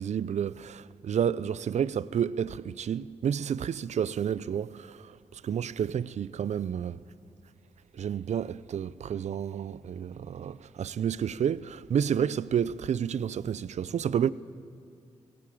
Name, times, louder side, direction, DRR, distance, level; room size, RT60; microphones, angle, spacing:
voice 1, 0.0-7.0 7.9-14.3, right 8 dB, 65° right, 0.6 m, -30 dB
18.5 x 17.0 x 8.6 m
supercardioid pair, 50°, 12 cm